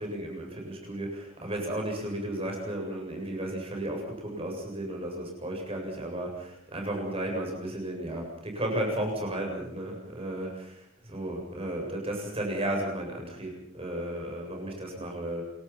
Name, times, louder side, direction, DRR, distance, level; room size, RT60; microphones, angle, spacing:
voice 1, 0.0-15.4, right 1 dB, 30° right, 1 dB, 7.5 m, -34 dB
28.5 x 23.5 x 5.9 m, 0.72 s
head